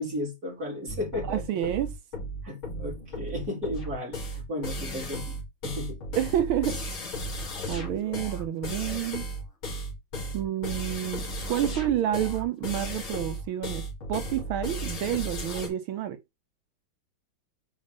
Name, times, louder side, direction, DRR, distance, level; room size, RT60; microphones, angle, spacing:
voice 1, 0.0-1.4 2.4-6.0, left 1 dB, 45° right, 4.8 m, -34 dB
sound 1, 0.9-15.7, equal, 80° left, 3.4 m, -35 dB
voice 2, 1.3-2.0 6.2-6.8 7.3-9.2 10.3-13.8 14.1-16.2, right 11 dB, 80° right, 1.6 m, -29 dB
8.4 x 5.2 x 3.5 m
omnidirectional pair, 2.2 m